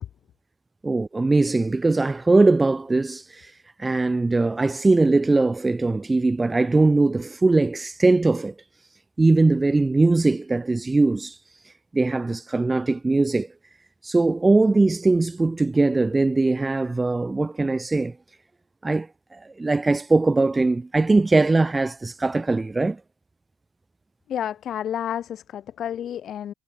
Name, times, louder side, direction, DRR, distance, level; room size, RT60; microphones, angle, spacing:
voice 1, 0.8-8.5 9.2-11.4 11.6-13.5 14.0-18.2 18.8-23.0, right 3 dB, 15° right, 0.3 m, -21 dB
voice 2, 24.3-26.5, left 10 dB, 50° left, 0.5 m, -30 dB
supercardioid pair, 85°, 0 cm